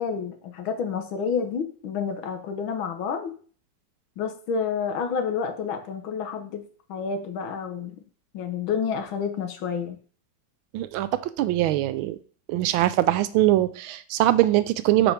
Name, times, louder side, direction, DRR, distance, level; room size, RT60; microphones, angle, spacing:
voice 1, 0.0-3.3 4.2-8.0 8.3-10.0, left 6 dB, 80° left, 6 dB, 1.8 m, -29 dB
voice 2, 10.7-12.2 12.5-15.1, right 14 dB, 85° right, 13 dB, 1.4 m, -22 dB
5.2 x 4.6 x 5.9 m, 0.43 s
omnidirectional pair, 2.2 m